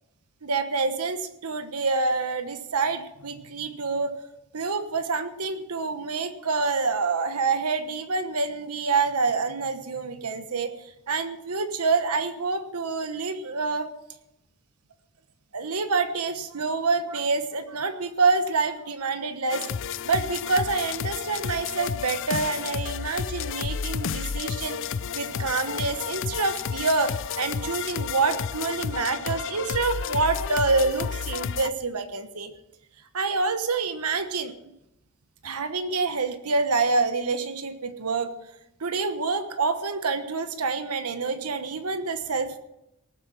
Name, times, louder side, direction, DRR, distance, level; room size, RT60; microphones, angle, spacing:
voice 1, 0.4-4.1 4.5-13.9 15.5-19.6 20.0-24.8 25.1-32.5 33.1-34.5 35.4-38.3 38.8-42.6, right 4 dB, 85° right, 9 dB, 1.2 m, -27 dB
sound 1, 19.5-31.7, left 7 dB, 60° left, 0.5 m, -31 dB
18.5 x 8.1 x 7.4 m, 0.84 s
head